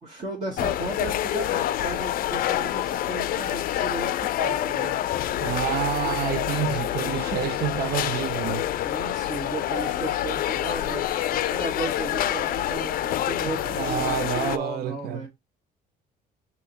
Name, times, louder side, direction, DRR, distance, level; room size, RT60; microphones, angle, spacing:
voice 1, 0.0-5.0 8.8-11.0 11.3-15.3, right 2 dB, 40° right, 1.6 m, -35 dB
sound 1, 0.6-14.6, left 12 dB, 60° left, 0.4 m, -27 dB
voice 2, 5.4-8.7 13.4-15.3, right 10 dB, 70° right, 0.7 m, -29 dB
6.2 x 2.9 x 2.8 m
cardioid pair, 110°, 17 cm